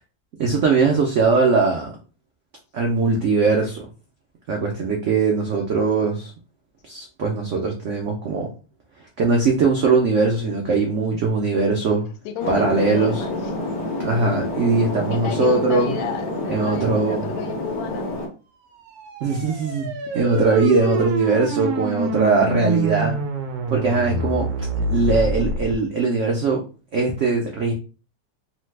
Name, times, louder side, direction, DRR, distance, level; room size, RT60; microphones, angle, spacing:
voice 1, 0.4-1.9 2.7-3.8 4.5-6.3 6.8-8.5 9.2-12.1 12.5-13.2 14.0-15.9 16.5-17.3 19.2-23.2 23.7-24.5 24.8-26.6 26.9-27.7, right 4 dB, 90° right, 0.6 m, -20 dB
voice 2, 12.2-13.3 15.1-18.2, left 8 dB, 90° left, 1.3 m, -32 dB
sound 1, 12.4-18.3, left 2 dB, 60° left, 1.2 m, -28 dB
sound 2, 18.8-25.7, right 2 dB, 70° right, 1.0 m, -26 dB
3.1 x 2.0 x 3.1 m
omnidirectional pair, 2.0 m